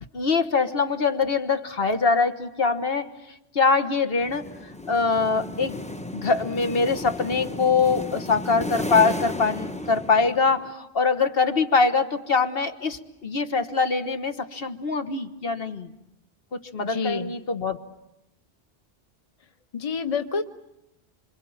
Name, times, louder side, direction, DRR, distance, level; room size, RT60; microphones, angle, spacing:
voice 1, 0.1-3.1 3.5-4.5 4.9-5.8 6.1-15.9 16.7-17.8, left 4 dB, 65° left, 8 dB, 1.6 m, -23 dB
sound 1, 4.2-10.7, left 1 dB, 5° left, 0.8 m, -34 dB
voice 2, 16.8-17.3 19.7-20.4, left 5 dB, 35° left, 8 dB, 1.1 m, -28 dB
27.0 x 26.5 x 7.3 m, 0.90 s
omnidirectional pair, 1.1 m